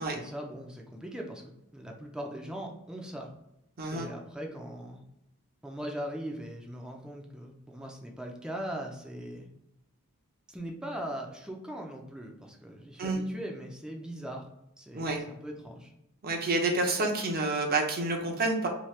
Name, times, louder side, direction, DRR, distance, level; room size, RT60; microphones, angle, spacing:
voice 1, 0.1-3.3 3.9-5.0 5.6-9.5 10.5-14.5 14.8-15.9, right 1 dB, 5° right, 0 dB, 0.5 m, -40 dB
voice 2, 16.2-18.7, right 2 dB, 45° right, 2 dB, 0.7 m, -28 dB
2.9 x 2.8 x 3.2 m, 0.83 s
head